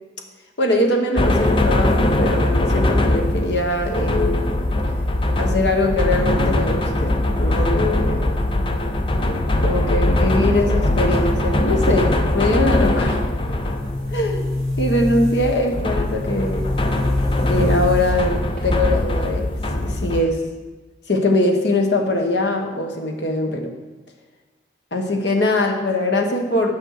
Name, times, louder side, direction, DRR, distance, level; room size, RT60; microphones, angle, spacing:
voice 1, 0.6-4.6 5.4-7.1 7.4-8.4 9.6-13.2 14.1-14.5 14.8-16.7 17.5-20.4 21.1-23.7 24.9-26.7, left 1 dB, 70° left, 3 dB, 1.2 m, -22 dB
sound 1, 1.2-20.2, left 1 dB, 25° left, 0.5 m, -21 dB
Boom, 13.3-19.1, left 2 dB, 5° left, 3.6 m, -27 dB
9.8 x 5.3 x 6.5 m, 1.3 s
head